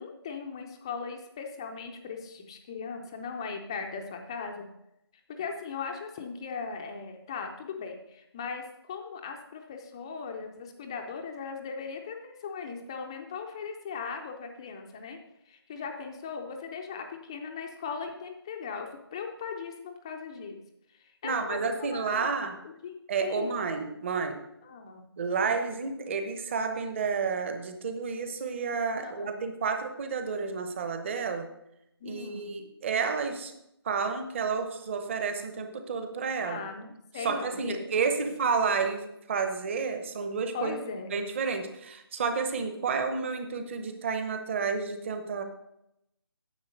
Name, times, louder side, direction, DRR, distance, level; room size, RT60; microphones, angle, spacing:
voice 1, 0.0-4.7 5.4-15.2 15.5-20.6 21.0-22.4 22.8-22.9 23.2-23.6 24.6-25.0 29.0-29.4 32.0-32.6 36.4-37.8 40.5-41.1, left 5 dB, 10° left, 4 dB, 0.4 m, -38 dB
voice 2, 21.2-22.5 23.1-24.4 25.2-31.5 32.0-33.5 33.8-36.7 37.2-40.8 41.1-45.4, right 5 dB, 30° right, 7 dB, 0.9 m, -30 dB
9.6 x 7.4 x 5.1 m, 0.82 s
figure-of-eight pair, 155°, 13 cm